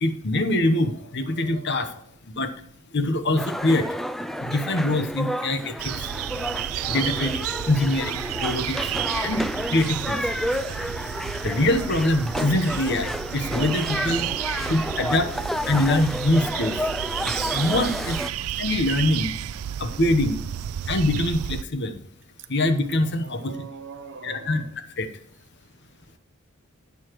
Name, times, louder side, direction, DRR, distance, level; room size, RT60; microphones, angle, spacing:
voice 1, 0.0-1.9 2.3-2.5 2.9-3.8 4.4-5.9 6.9-8.8 9.2-9.4 9.7-10.2 11.4-14.4 14.7-15.3 15.7-16.8 17.2-19.3 19.8-20.4 20.9-22.0 22.5-23.5 24.2-24.6 25.0-25.1, left 1 dB, 55° left, 1.0 m, -24 dB
voice 2, 1.3-2.0 13.8-15.2 23.2-24.7, right 5 dB, 60° right, 0.8 m, -43 dB
sound 1, 3.4-18.3, equal, ahead, 0.3 m, -31 dB
sound 2, 5.8-21.6, right 11 dB, 90° right, 0.4 m, -32 dB
11.5 x 8.3 x 3.0 m
head